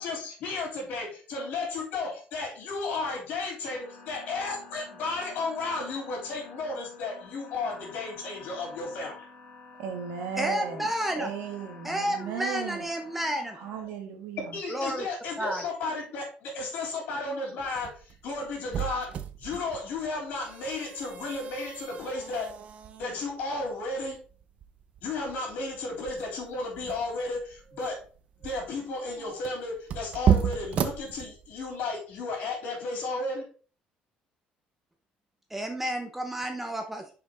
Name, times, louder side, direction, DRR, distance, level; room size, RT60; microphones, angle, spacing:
voice 1, 0.0-9.3 14.5-22.5 23.0-24.2 25.0-28.0 28.4-33.5, left 3 dB, 60° left, 3.6 m, -34 dB
sound 1, 3.6-13.8, left 4 dB, 45° left, 2.6 m, -50 dB
voice 2, 9.8-12.9 13.6-14.6, right 7 dB, 80° right, 1.7 m, -36 dB
voice 3, 10.4-11.3 11.8-13.6 14.7-15.1 15.4-15.6 35.5-37.1, right 1 dB, 5° right, 0.8 m, -31 dB
sound 2, 17.6-31.8, right 8 dB, 40° right, 0.6 m, -33 dB
5.7 x 5.1 x 3.9 m
cardioid pair, 150°, 3 cm